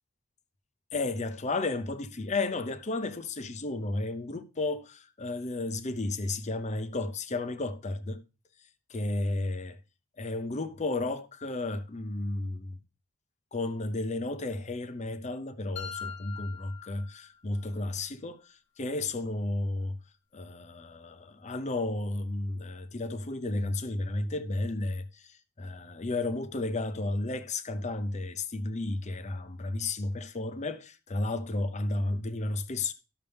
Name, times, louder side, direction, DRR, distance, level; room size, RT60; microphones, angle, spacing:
voice 1, 0.9-8.2 8.9-9.8 10.2-12.8 13.5-20.0 20.3-32.9, left 2 dB, 30° left, 0.6 m, -33 dB
sound 1, 15.8-17.8, left 7 dB, 50° left, 1.1 m, -42 dB
12.5 x 6.6 x 3.4 m
head